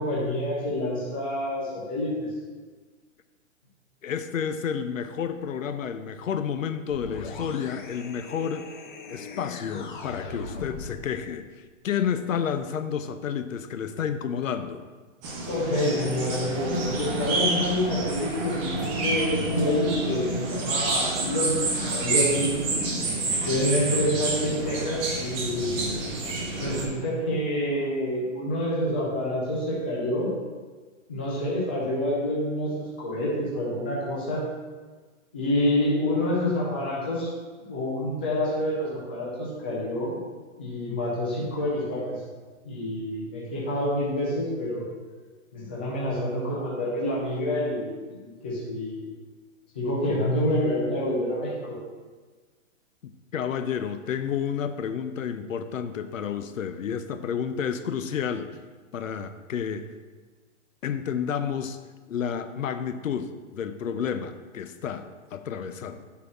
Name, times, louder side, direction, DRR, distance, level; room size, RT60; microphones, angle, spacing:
voice 1, 0.0-2.3 15.5-22.5 23.4-25.8 26.6-30.3 31.1-34.4 35.3-37.3 37.6-40.1 40.6-42.2 42.6-44.8 45.5-49.1 49.7-51.8, left 1 dB, 10° left, -6 dB, 0.4 m, -27 dB
voice 2, 4.0-8.7 9.1-11.5 11.8-14.8 53.0-58.5 58.9-59.9 60.8-61.8 62.1-66.0, left 7 dB, 75° left, 10 dB, 0.8 m, -30 dB
sound 1, 6.9-11.1, left 4 dB, 40° left, 0.9 m, -39 dB
sound 2, 15.2-26.8, right 2 dB, 15° right, 0.8 m, -28 dB
8.5 x 4.2 x 7.2 m, 1.4 s
hypercardioid pair, 165°, 40 cm